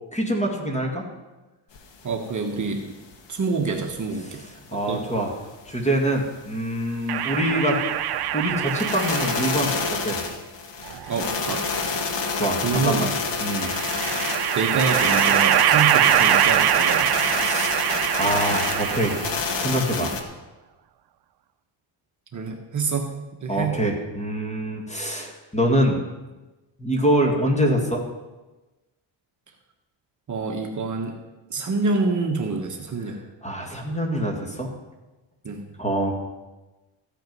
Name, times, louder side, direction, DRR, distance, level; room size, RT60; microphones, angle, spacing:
voice 1, 0.1-1.0 4.7-5.3 5.7-7.8 8.3-10.3 12.4-13.1 13.4-13.7 17.4-19.2 19.6-20.3 23.5-26.0 26.8-28.0 33.4-34.7 35.8-36.1, right 1 dB, 15° left, 1 dB, 2.2 m, -25 dB
sound 1, 1.8-1.9 2.1-2.2 2.6-2.7 3.1-3.2 3.6-4.2 4.7-4.8 5.2-5.3 5.7-5.8 6.2-6.3 6.7-6.8 7.2-7.3 7.7-7.8 8.2-8.3 8.6-20.2, left 4 dB, 65° left, 1.6 m, -28 dB
voice 2, 2.0-2.8 3.3-4.4 4.7-5.0 11.1-11.7 12.6-13.1 14.5-17.2 20.0-20.1 22.3-23.1 23.4-23.8 30.3-31.2 31.5-33.2 35.4-35.6, right 4 dB, 40° right, 2 dB, 1.3 m, -27 dB
sound 2, 7.1-9.7 10.9-11.9 13.5-19.5, right 11 dB, 55° right, 0.7 m, -23 dB
14.5 x 9.0 x 5.5 m, 1.1 s
cardioid pair, 130°, 47 cm